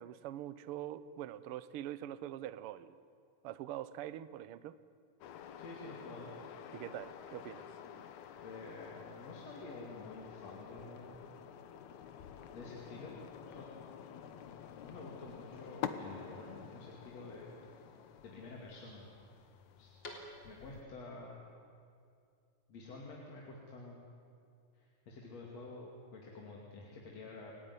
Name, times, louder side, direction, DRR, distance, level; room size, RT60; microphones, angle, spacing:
voice 1, 0.0-2.9 3.4-4.8 6.7-7.7, right 12 dB, 70° right, 15 dB, 1.4 m, -44 dB
sound 1, 5.2-20.8, left 8 dB, 75° left, 2.5 m, -49 dB
voice 2, 5.6-6.3 8.4-11.2 12.5-13.8 14.2-17.9 18.2-19.1 19.8-20.0 20.4-21.4 22.7-24.0 24.7-27.6, left 2 dB, 60° left, -2 dB, 3.7 m, -49 dB
sound 2, 12.4-20.9, left 1 dB, 40° left, 4.1 m, -59 dB
29.0 x 18.0 x 9.8 m, 2.4 s
omnidirectional pair, 3.3 m